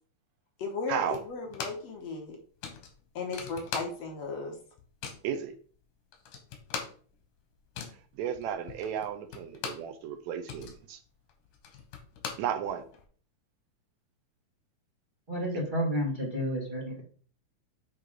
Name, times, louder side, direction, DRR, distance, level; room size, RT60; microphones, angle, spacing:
voice 1, 0.6-2.4 3.2-4.6, left 4 dB, 65° left, 2 dB, 2.2 m, -36 dB
sound 1, 1.1-2.0 2.2-2.3 2.6-4.3 4.6-5.3 5.8-5.9 6.1-10.0 10.3-13.0, left 6 dB, 90° left, 2.7 m, -41 dB
voice 2, 8.2-11.0 12.4-12.8, right 9 dB, 80° right, 8 dB, 1.9 m, -33 dB
voice 3, 15.3-17.0, equal, 20° right, -3 dB, 1.4 m, -31 dB
8.2 x 3.1 x 4.9 m, 0.44 s
omnidirectional pair, 3.4 m